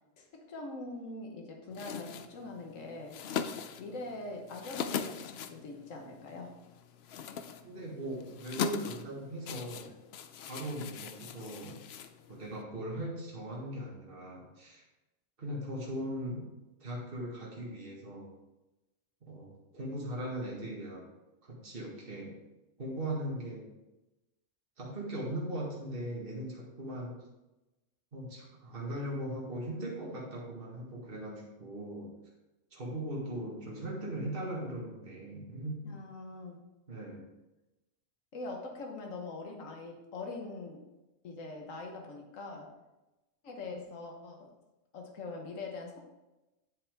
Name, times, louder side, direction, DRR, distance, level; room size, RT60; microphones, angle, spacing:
voice 1, 0.2-3.1 3.8-6.5 35.8-36.6 38.3-40.8 41.2-42.7 43.4-44.4 44.9-46.0, left 3 dB, 80° left, 1 dB, 1.6 m, -43 dB
sound 1, 1.7-12.6, left 7 dB, 65° left, 0.7 m, -41 dB
voice 2, 7.6-9.9 10.4-11.8 12.3-14.8 15.4-16.4 16.8-18.3 19.3-21.1 21.4-22.3 22.8-23.7 24.8-27.1 28.1-32.1 32.7-35.8 36.9-37.2, right 1 dB, 45° right, -4 dB, 2.1 m, -39 dB
9.3 x 7.1 x 3.5 m, 1.0 s
omnidirectional pair, 1.3 m